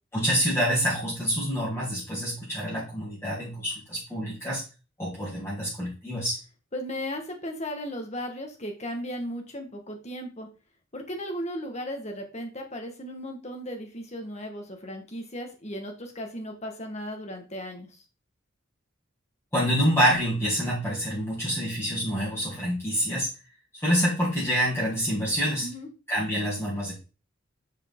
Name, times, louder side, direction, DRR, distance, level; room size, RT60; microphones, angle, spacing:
voice 1, 0.1-4.6 5.0-6.4 19.5-23.3 23.8-25.7 26.1-26.9, equal, 10° left, -6 dB, 2.3 m, -27 dB
voice 2, 6.7-10.5 10.9-17.9 25.6-25.9, equal, 35° left, 3 dB, 1.5 m, -36 dB
7.2 x 4.9 x 3.7 m, 0.32 s
head